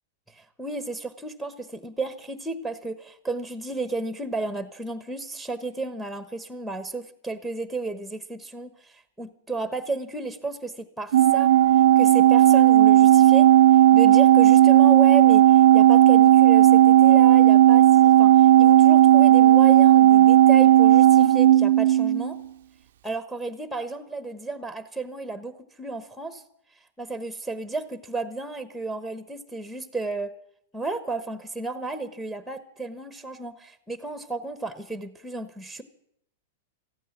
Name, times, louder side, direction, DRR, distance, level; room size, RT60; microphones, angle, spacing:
voice 1, 0.3-11.5 12.0-13.5 13.9-22.4 23.0-26.4 27.0-30.3 30.7-35.8, right 2 dB, ahead, 12 dB, 1.2 m, -33 dB
Organ, 11.1-22.4, right 12 dB, 70° right, 0.5 m, -14 dB
14.5 x 8.5 x 9.9 m, 0.72 s
hypercardioid pair, 120°, 0 cm